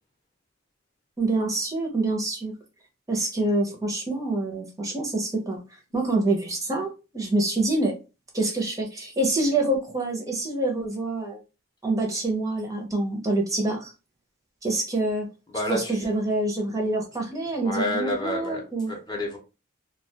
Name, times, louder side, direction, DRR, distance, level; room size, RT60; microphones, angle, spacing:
voice 1, 1.2-2.5 3.1-5.6 5.9-7.9 8.3-11.4 11.8-13.9 14.6-15.3 15.7-18.9, right 2 dB, 20° right, 0.5 m, -26 dB
voice 2, 15.5-16.0 17.6-18.6 18.9-19.4, left 1 dB, 25° left, 0.6 m, -29 dB
2.2 x 2.2 x 2.7 m
head